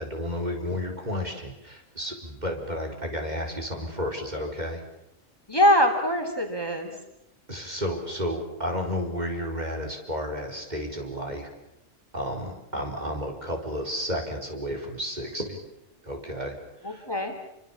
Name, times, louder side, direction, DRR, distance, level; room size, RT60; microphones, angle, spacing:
voice 1, 0.0-4.8 7.5-11.5 12.1-15.6 16.0-16.6 16.8-17.1, equal, 35° right, 1 dB, 4.6 m, -32 dB
voice 2, 5.5-7.0 16.8-17.3, equal, 20° left, 4 dB, 3.5 m, -23 dB
29.0 x 24.5 x 7.3 m, 0.88 s
omnidirectional pair, 1.3 m